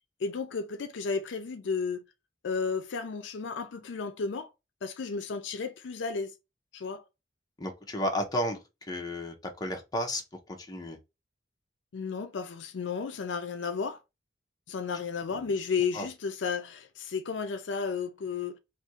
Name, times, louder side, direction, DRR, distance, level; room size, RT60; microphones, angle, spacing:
voice 1, 0.2-2.0 2.4-4.5 4.8-6.3 6.7-7.0 11.9-14.0 14.7-18.6, left 5 dB, 75° left, 0.4 m, -33 dB
voice 2, 7.6-8.6 8.9-10.2 10.6-11.0 15.3-15.4 15.9-16.1, left 1 dB, 20° left, 0.7 m, -32 dB
2.7 x 2.6 x 4.2 m
head